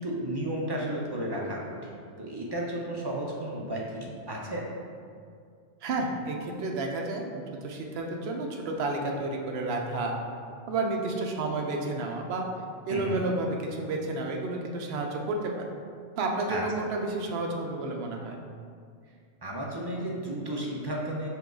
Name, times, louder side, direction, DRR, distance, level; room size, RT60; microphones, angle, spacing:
voice 1, 0.0-4.6 12.9-13.2 16.5-16.6 19.4-21.3, right 1 dB, 40° right, -3 dB, 0.3 m, -33 dB
voice 2, 5.8-10.1 10.7-12.5 12.9-15.6 16.2-18.4, right 2 dB, 65° right, 1 dB, 0.8 m, -31 dB
5.4 x 2.3 x 3.8 m, 2.2 s
omnidirectional pair, 1.2 m